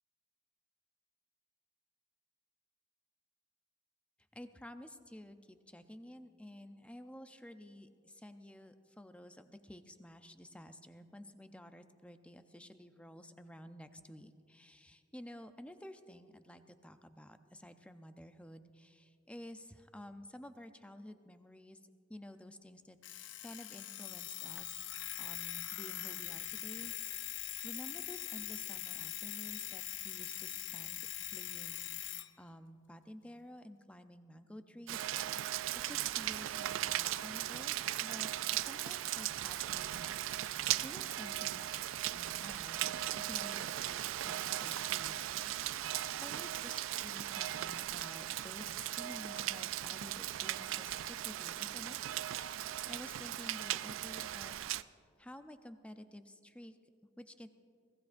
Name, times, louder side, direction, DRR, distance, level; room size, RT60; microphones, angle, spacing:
voice 1, 4.3-21.8 22.1-35.1 35.7-37.7 38.0-41.7 42.1-45.3 45.6-52.0 52.6-54.5 55.2-56.8 57.2-57.5, left 1 dB, 5° left, 9 dB, 0.5 m, -52 dB
Alarm, 23.0-32.3, left 12 dB, 65° left, 0.5 m, -42 dB
Rain, 34.9-54.8, right 13 dB, 75° right, 0.3 m, -38 dB
21.5 x 16.0 x 2.6 m, 2.3 s
head